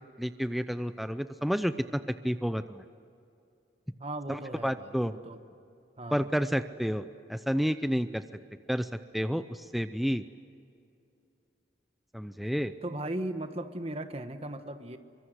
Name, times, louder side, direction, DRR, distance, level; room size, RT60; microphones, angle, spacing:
voice 1, 0.2-1.7 2.2-2.8 4.3-5.1 6.1-7.0 7.3-8.2 8.7-10.2 12.1-12.7, equal, ahead, 10 dB, 0.5 m, -30 dB
voice 2, 4.0-5.4 6.0-6.3 7.0-7.1 12.8-15.0, right 1 dB, 35° right, 8 dB, 1.4 m, -37 dB
24.5 x 24.0 x 8.0 m, 2.6 s
head